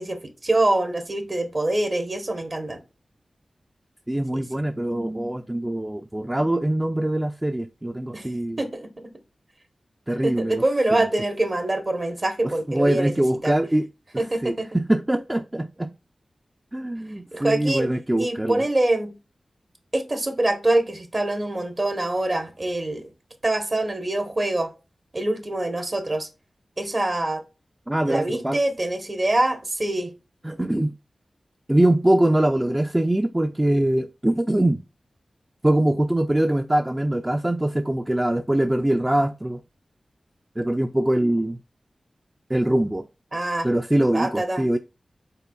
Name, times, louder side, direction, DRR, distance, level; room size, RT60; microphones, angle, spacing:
voice 1, 0.0-2.8 4.3-4.6 8.1-8.3 8.6-9.1 10.2-13.1 13.4-13.5 14.2-14.7 17.3-17.9 18.2-19.1 19.9-23.1 23.4-24.7 25.1-26.3 26.8-27.4 28.1-30.1 43.3-43.7 44.1-44.6, right 2 dB, 45° right, 0.9 m, -25 dB
voice 2, 4.1-8.6 10.1-10.6 10.9-11.1 12.4-13.9 14.1-15.9 16.7-18.6 27.9-28.6 30.4-30.9 31.7-34.8 35.6-39.6 40.6-41.6 42.5-43.1 43.6-44.8, right 1 dB, 20° right, 0.3 m, -23 dB
5.5 x 3.7 x 2.3 m
cardioid pair, 50°, 0 cm